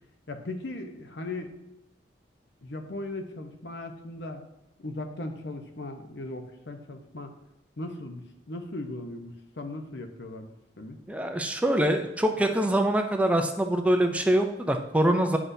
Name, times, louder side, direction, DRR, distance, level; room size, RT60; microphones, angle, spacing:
voice 1, 0.3-1.6 2.6-4.4 4.8-7.3 7.8-11.0, left 2 dB, 70° left, 5 dB, 0.8 m, -38 dB
voice 2, 11.1-15.4, right 1 dB, 10° right, 5 dB, 0.5 m, -24 dB
9.5 x 5.9 x 2.7 m, 0.88 s
head